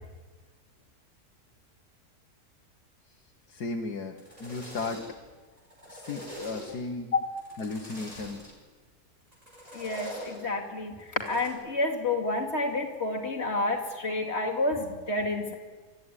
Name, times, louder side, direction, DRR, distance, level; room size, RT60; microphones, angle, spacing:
voice 1, 3.5-5.0 5.9-7.1 7.6-8.5 10.4-10.5, left 3 dB, 90° left, 2 dB, 1.9 m, -35 dB
sound 1, 4.0-5.3 5.6-6.9 7.4-8.5 9.3-10.5 11.0-11.5, equal, 25° right, 5.3 m, -44 dB
voice 2, 9.7-10.9 11.3-15.5, left 2 dB, 40° left, 1 dB, 2.9 m, -29 dB
25.0 x 14.0 x 9.9 m, 1.4 s
omnidirectional pair, 1.6 m